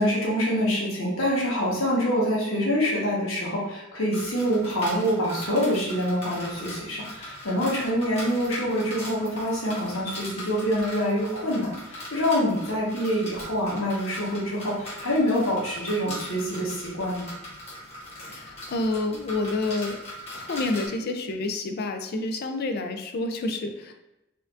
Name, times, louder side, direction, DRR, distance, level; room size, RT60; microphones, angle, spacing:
voice 1, 0.0-17.3, equal, 85° left, -4 dB, 1.2 m, -26 dB
sound 1, 4.1-20.9, equal, 30° left, 1.2 m, -40 dB
voice 2, 18.3-20.0 20.3-23.9, left 2 dB, 50° left, 6 dB, 0.4 m, -29 dB
4.2 x 2.6 x 2.4 m, 0.94 s
head